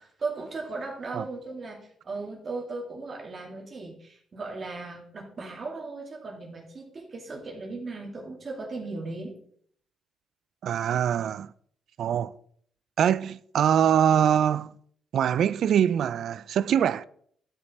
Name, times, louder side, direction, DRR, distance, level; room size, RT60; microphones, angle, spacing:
voice 1, 0.0-9.4, right 3 dB, 40° right, 2.3 m, -37 dB
voice 2, 10.6-11.5 12.0-12.3 13.0-14.7 15.1-17.0, right 9 dB, 65° right, 0.4 m, -23 dB
11.5 x 5.2 x 4.2 m
cardioid pair, 90°, 0 cm